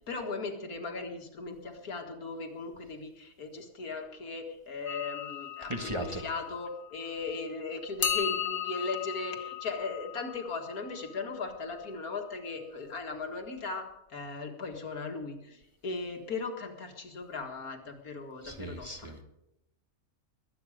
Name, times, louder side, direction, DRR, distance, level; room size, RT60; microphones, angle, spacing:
voice 1, 0.0-19.1, left 3 dB, 80° left, 4 dB, 2.3 m, -38 dB
sound 1, 4.9-7.3 8.0-11.9, left 9 dB, 40° left, 1.1 m, -37 dB
voice 2, 5.7-6.2 18.4-19.2, right 1 dB, 20° right, 4 dB, 1.4 m, -37 dB
21.5 x 9.2 x 5.1 m, 0.86 s
omnidirectional pair, 1.5 m